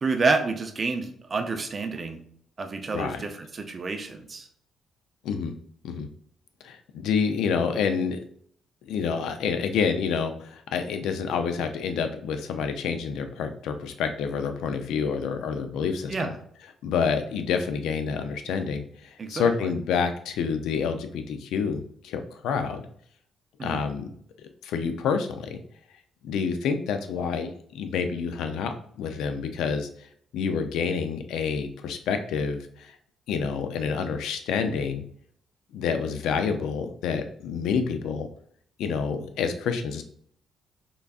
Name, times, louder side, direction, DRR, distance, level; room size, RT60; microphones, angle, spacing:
voice 1, 0.0-2.2 2.6-4.5 16.1-16.4 19.2-19.7 23.6-23.8, right 3 dB, 30° right, 6 dB, 0.4 m, -29 dB
voice 2, 2.9-3.2 5.2-5.5 5.8-6.1 6.6-8.2 8.8-16.3 16.8-22.8 23.6-24.1 24.6-25.6 26.2-29.9 30.3-32.9 33.3-35.0 35.7-38.3 38.8-40.0, left 6 dB, 85° left, 8 dB, 0.4 m, -28 dB
3.8 x 3.4 x 2.3 m, 0.63 s
cardioid pair, 135°, 0 cm